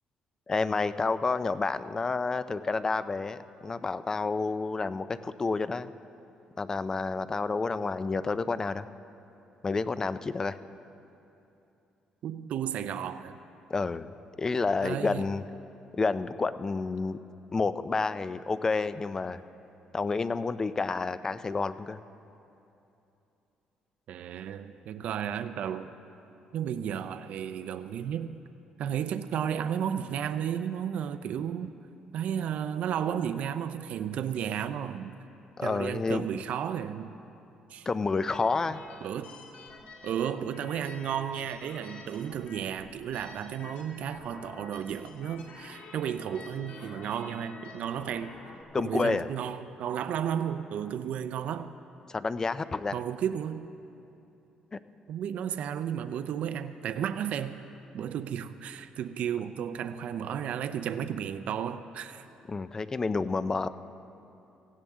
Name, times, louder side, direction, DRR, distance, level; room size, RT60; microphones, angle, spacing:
voice 1, 0.5-5.9 6.6-8.9 9.6-10.6 13.7-14.1 14.4-15.4 15.9-17.2 17.5-19.4 19.9-22.0 35.6-36.3 37.9-38.8 48.7-49.3 52.1-53.0 54.7-54.8 62.5-63.7, left 4 dB, 25° left, 14 dB, 0.4 m, -29 dB
voice 2, 12.2-13.4 14.8-15.2 24.1-25.9 26.5-28.4 28.8-31.7 32.1-35.1 35.6-37.1 37.7-37.9 39.0-39.3 40.0-48.4 48.8-51.7 52.9-53.7 55.1-57.6 57.9-62.3, right 9 dB, 65° right, 10 dB, 0.5 m, -33 dB
sound 1, 38.3-48.6, left 3 dB, 70° left, 1.9 m, -48 dB
17.5 x 15.5 x 3.6 m, 2.8 s
cardioid pair, 125°, 2 cm